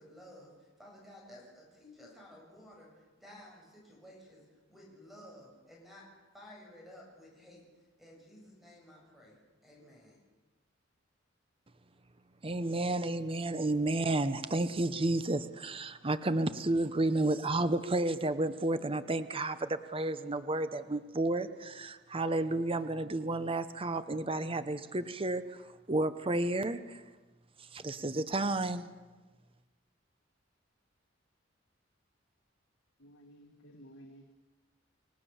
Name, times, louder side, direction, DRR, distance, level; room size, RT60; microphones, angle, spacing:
voice 1, 0.0-10.2, left 1 dB, ahead, -2 dB, 7.3 m, -54 dB
voice 2, 12.4-27.0 27.7-28.9, right 2 dB, 30° right, 11 dB, 0.9 m, -31 dB
voice 3, 33.0-34.3, equal, 80° left, 3 dB, 1.8 m, -54 dB
29.5 x 18.0 x 7.1 m, 1.2 s
head